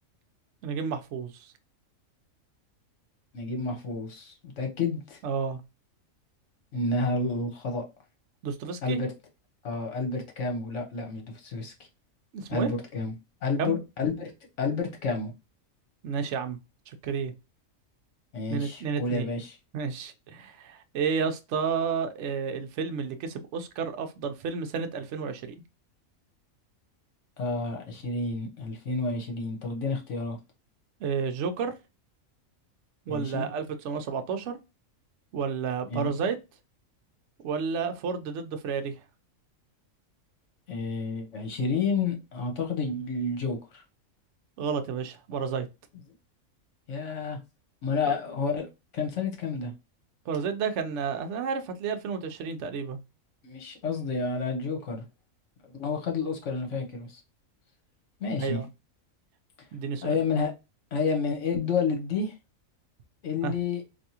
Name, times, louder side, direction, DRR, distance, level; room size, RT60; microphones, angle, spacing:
voice 1, 0.6-1.5 5.2-5.6 8.4-9.0 12.3-12.7 13.6-13.8 16.0-16.6 16.9-17.3 18.5-19.3 19.7-25.5 31.0-31.7 33.1-34.6 35.3-36.4 37.4-39.0 44.6-45.7 48.0-48.1 50.3-53.0 58.4-58.7 59.7-60.2 63.4-63.5, right 6 dB, 65° right, 0.8 m, -31 dB
voice 2, 3.3-5.2 6.7-7.8 8.8-9.1 9.6-11.7 12.5-13.1 13.4-14.3 14.6-15.3 18.3-19.6 27.4-30.4 33.1-33.5 35.9-36.3 40.7-43.8 46.9-47.4 47.8-48.7 48.9-49.7 53.4-55.0 55.7-57.2 58.2-58.6 60.0-60.5 60.9-62.3 63.2-63.8, left 4 dB, 65° left, 1.3 m, -30 dB
3.4 x 2.7 x 2.8 m
omnidirectional pair, 1.4 m